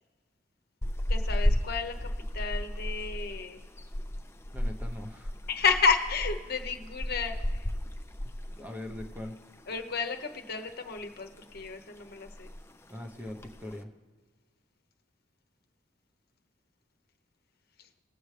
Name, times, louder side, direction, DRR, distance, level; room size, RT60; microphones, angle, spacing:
sound 1, 0.8-9.3 9.6-9.8 10.2-11.0 11.4-11.7 12.0-12.1 12.3-12.7 13.3-13.8, left 1 dB, 15° left, 0.5 m, -33 dB
voice 1, 1.1-3.6 5.5-7.7 9.7-12.5, left 5 dB, 55° left, 6 dB, 1.0 m, -31 dB
voice 2, 4.5-5.3 8.2-9.4 12.9-13.9, left 1 dB, 10° right, 3 dB, 0.9 m, -41 dB
20.5 x 7.9 x 3.3 m, 1.5 s
head